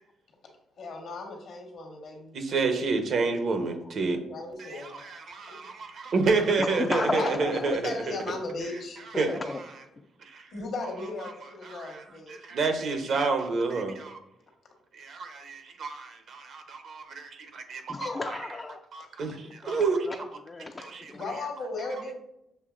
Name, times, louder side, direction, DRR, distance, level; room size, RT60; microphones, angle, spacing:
voice 1, 0.8-2.4 4.1-5.0 5.4-5.6 7.1-9.0 10.5-12.4 19.7-19.8 21.1-22.1, left 3 dB, 65° left, 2 dB, 1.2 m, -36 dB
voice 2, 2.3-4.2 4.6-7.9 9.2-9.4 10.2-10.5 11.6-12.0 12.3-14.2 14.9-18.4 18.9-20.2 20.8-21.1, right 4 dB, 60° right, 6 dB, 0.7 m, -29 dB
voice 3, 6.6-7.7 9.1-9.6 17.9-18.8 19.4-21.2, left 3 dB, 30° left, 4 dB, 0.3 m, -34 dB
6.6 x 3.0 x 2.4 m, 0.84 s
cardioid pair, 90°, 0 cm